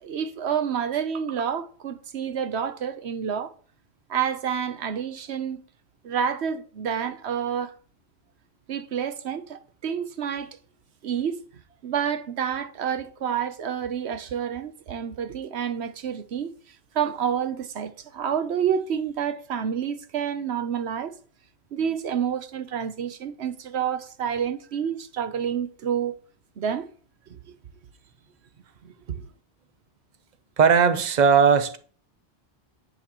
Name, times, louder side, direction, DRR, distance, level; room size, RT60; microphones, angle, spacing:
voice 1, 0.0-3.5 4.1-5.6 6.0-7.7 8.7-10.6 11.0-11.4 11.8-16.5 16.9-21.2 21.7-26.2 26.6-26.9 27.3-27.4 28.8-29.3, right 8 dB, 90° right, 1.1 m, -29 dB
voice 2, 30.6-31.8, right 6 dB, 45° right, 1.0 m, -18 dB
10.0 x 10.0 x 3.1 m
omnidirectional pair, 1.1 m